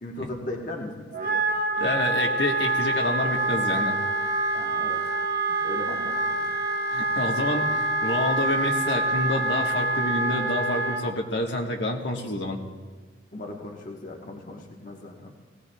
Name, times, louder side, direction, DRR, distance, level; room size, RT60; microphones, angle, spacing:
voice 1, 0.0-1.5 4.5-5.0 5.5-6.6 13.3-15.3, left 2 dB, 45° left, 1 dB, 1.1 m, -37 dB
Wind instrument woodwind instrument, 1.1-11.0, right 2 dB, 50° right, 1.1 m, -26 dB
voice 2, 1.8-4.0 6.9-12.6, left 1 dB, 75° left, 1 dB, 1.3 m, -28 dB
18.5 x 16.5 x 2.3 m, 1.4 s
head